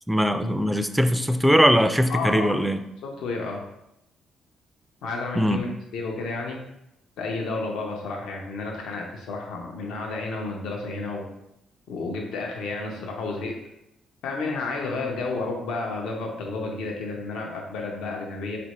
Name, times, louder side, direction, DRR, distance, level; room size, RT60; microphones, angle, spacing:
voice 1, 0.1-2.8 5.4-5.6, equal, 5° right, 9 dB, 0.3 m, -21 dB
voice 2, 2.1-2.6 3.0-3.6 5.0-5.7 5.9-6.6 7.2-11.3 11.9-13.6 14.2-18.6, left 3 dB, 85° left, 1 dB, 0.7 m, -31 dB
4.3 x 2.6 x 3.0 m, 0.85 s
cardioid pair, 90°, 0 cm